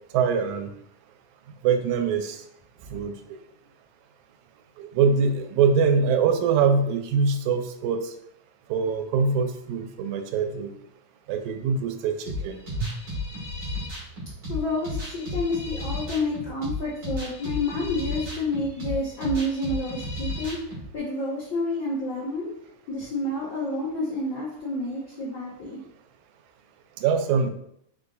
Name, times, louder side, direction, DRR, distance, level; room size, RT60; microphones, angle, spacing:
voice 1, 0.1-0.7 1.6-2.4 2.9-3.1 4.8-8.0 8.7-10.7 11.3-12.2 12.4-12.9 27.0-27.5, right 5 dB, 85° right, 6 dB, 1.9 m, -23 dB
sound 1, 12.3-20.9, left 1 dB, 40° right, 1.6 m, -33 dB
voice 2, 14.5-20.6 20.9-22.5 22.9-25.8, left 2 dB, 80° left, -7 dB, 1.0 m, -29 dB
4.9 x 3.9 x 2.3 m, 0.73 s
omnidirectional pair, 3.4 m